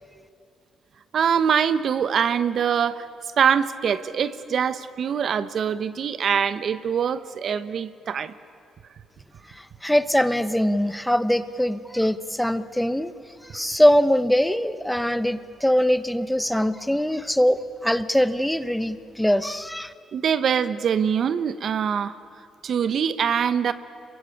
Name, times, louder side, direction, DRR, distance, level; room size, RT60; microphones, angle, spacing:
voice 1, 1.1-3.1 3.4-8.3 20.1-22.2 22.6-23.7, right 7 dB, 60° right, 13 dB, 1.0 m, -23 dB
voice 2, 9.5-13.1 13.4-19.9, equal, 5° left, 13 dB, 1.0 m, -22 dB
26.5 x 22.5 x 8.5 m, 2.7 s
cardioid pair, 90°, 0 cm